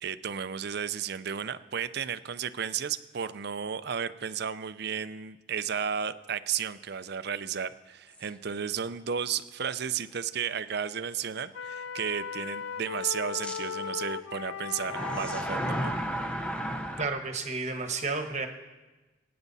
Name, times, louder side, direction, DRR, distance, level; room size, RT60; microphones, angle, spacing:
voice 1, 0.0-15.9, right 7 dB, 50° right, 13 dB, 0.5 m, -33 dB
sound 1, 8.1-8.3 8.9-9.0 13.4-13.6 14.8-17.1, equal, 5° left, 0.8 m, -32 dB
sound 2, 11.5-15.5, left 7 dB, 70° left, 0.5 m, -37 dB
voice 2, 17.0-18.5, right 3 dB, 35° right, 6 dB, 1.2 m, -31 dB
24.0 x 9.5 x 4.1 m, 1.2 s
head